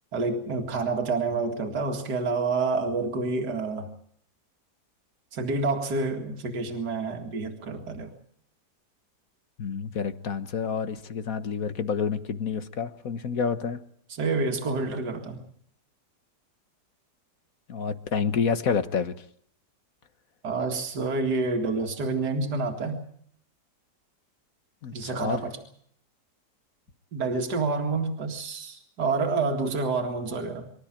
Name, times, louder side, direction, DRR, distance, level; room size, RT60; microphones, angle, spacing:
voice 1, 0.1-3.9 5.3-8.1 14.2-15.4 20.4-23.0 24.9-25.6 27.1-30.7, right 3 dB, 70° right, 3 dB, 2.7 m, -28 dB
voice 2, 9.6-13.8 17.7-19.1 24.8-25.4, left 6 dB, 55° left, 11 dB, 1.6 m, -28 dB
25.5 x 13.5 x 8.9 m, 0.66 s
omnidirectional pair, 1.8 m